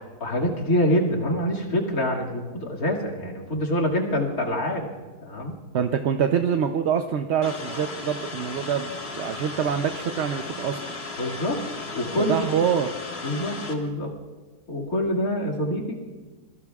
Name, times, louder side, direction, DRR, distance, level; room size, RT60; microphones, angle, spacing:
voice 1, 0.0-4.9 5.2-5.6 11.2-11.6 11.9-12.4 13.2-14.1 14.7-16.0, equal, 70° left, -1 dB, 2.7 m, -25 dB
voice 2, 5.7-10.8 12.2-12.9, right 8 dB, 55° right, 6 dB, 0.8 m, -25 dB
sound 1, 7.4-13.7, left 3 dB, 45° left, 1.8 m, -35 dB
26.5 x 23.0 x 2.4 m, 1.3 s
omnidirectional pair, 1.6 m